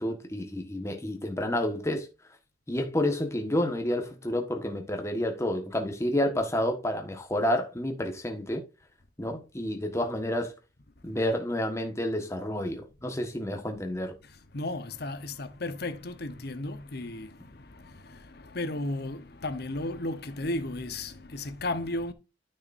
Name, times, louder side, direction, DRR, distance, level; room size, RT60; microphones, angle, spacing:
voice 1, 0.0-2.1 2.7-8.6 9.2-10.5 11.0-14.1, left 1 dB, 15° left, 1.4 m, -29 dB
voice 2, 14.2-22.1, left 2 dB, 55° left, 1.0 m, -35 dB
9.2 x 6.7 x 2.6 m
head